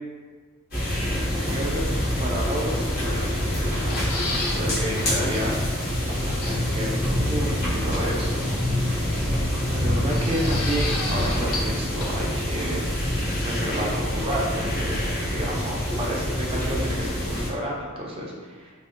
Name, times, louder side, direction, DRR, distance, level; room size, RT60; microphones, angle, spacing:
sound 1, 0.7-17.5, equal, 45° left, 0.9 m, -26 dB
voice 1, 1.3-1.8 2.2-4.3 4.5-5.5 6.1-8.6 9.3-12.9 13.4-15.1 15.3-18.7, right 1 dB, 25° right, -3 dB, 0.3 m, -31 dB
sound 2, 3.7-4.6 5.0-5.1 5.3-5.4 6.4-6.8 8.1-8.7 10.1-11.7 12.0-12.1, left 2 dB, 80° left, 0.4 m, -32 dB
2.5 x 2.1 x 2.4 m, 1.5 s
head